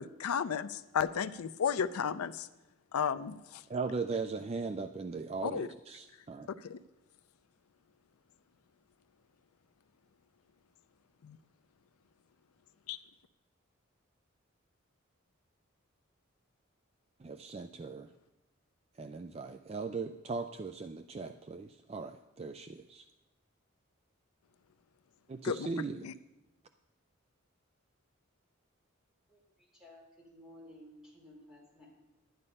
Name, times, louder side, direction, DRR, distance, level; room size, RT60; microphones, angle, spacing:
voice 1, 0.0-2.5 2.9-3.4 5.4-5.7 6.6-6.8 11.2-11.4 12.9-13.0 25.4-25.7 26.0-26.1, left 7 dB, 90° left, 13 dB, 0.5 m, -33 dB
voice 2, 3.7-6.5 17.2-18.1 19.0-22.1 22.4-23.0 25.3-26.0, right 4 dB, 30° right, 8 dB, 0.3 m, -38 dB
voice 3, 29.3-30.0 30.3-31.9, left 1 dB, ahead, -6 dB, 4.3 m, -55 dB
11.0 x 10.5 x 5.4 m, 1.0 s
head